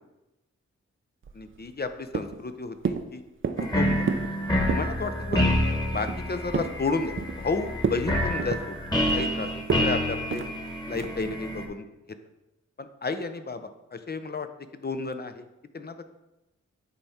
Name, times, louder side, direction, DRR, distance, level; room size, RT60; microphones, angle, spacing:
sound 1, 1.2-1.9 2.1-2.5 2.9-3.1 3.4-3.7 4.1-4.3 4.6-4.9 5.3-5.6 5.9-6.8 7.2-7.5 7.8-8.1 8.4-9.3 9.7-9.9 10.3-10.5 11.0-11.2, right 5 dB, 40° right, 0.6 m, -30 dB
voice 1, 1.3-3.2 3.7-4.0 4.6-5.5 5.9-8.8 9.1-10.4 10.9-11.9 12.8-14.5 14.8-15.5 15.7-16.0, left 4 dB, 35° left, 9 dB, 0.7 m, -32 dB
sound 2, 3.6-11.7, equal, 15° left, 1.4 m, -28 dB
9.2 x 3.4 x 4.2 m, 0.97 s
cardioid pair, 45°, 30 cm